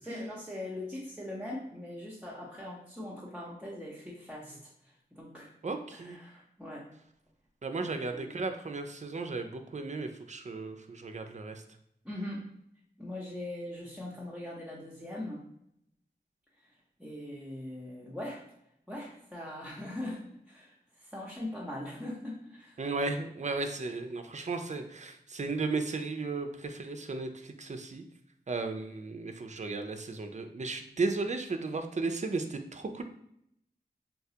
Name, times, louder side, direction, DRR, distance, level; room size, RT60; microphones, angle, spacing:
voice 1, 0.0-4.6 5.2-5.5 5.9-6.9 7.8-8.3 12.0-12.5 13.0-15.4 17.0-18.4 18.9-22.8, left 1 dB, 5° right, -5 dB, 0.7 m, -41 dB
voice 2, 5.6-6.2 7.6-11.6 22.8-28.0 28.5-33.0, right 3 dB, 40° right, 6 dB, 0.4 m, -35 dB
3.9 x 2.3 x 2.8 m, 0.74 s
wide cardioid pair, 55°, 18 cm